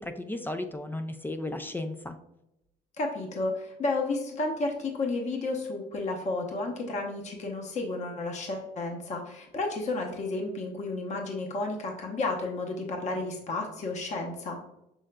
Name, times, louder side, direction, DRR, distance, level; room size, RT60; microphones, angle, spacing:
voice 1, 0.0-2.1, left 1 dB, 10° left, 8 dB, 0.3 m, -34 dB
voice 2, 3.0-14.6, left 2 dB, 45° left, 1 dB, 0.8 m, -32 dB
6.3 x 3.6 x 2.2 m, 0.87 s
cardioid pair, 110°, 17 cm